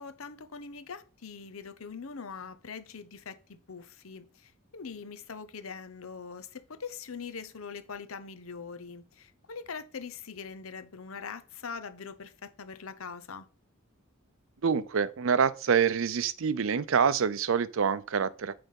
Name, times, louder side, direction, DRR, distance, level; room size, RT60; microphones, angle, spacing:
voice 1, 0.0-13.5, left 5 dB, 75° left, 0.8 m, -42 dB
voice 2, 14.6-18.5, right 6 dB, 65° right, 0.5 m, -26 dB
9.0 x 3.5 x 5.4 m
head